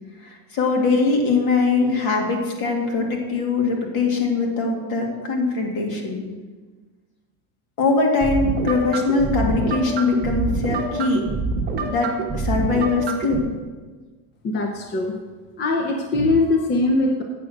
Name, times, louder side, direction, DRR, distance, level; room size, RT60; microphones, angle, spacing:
voice 1, 0.2-6.2 7.8-11.3 11.8-13.5, left 3 dB, 45° left, 1 dB, 2.1 m, -22 dB
sound 1, 8.2-13.4, right 3 dB, 20° right, 1.2 m, -26 dB
voice 2, 14.4-15.2 15.6-17.2, left 2 dB, 25° left, 3 dB, 0.5 m, -21 dB
8.5 x 6.3 x 6.3 m, 1.3 s
cardioid pair, 160°, 48 cm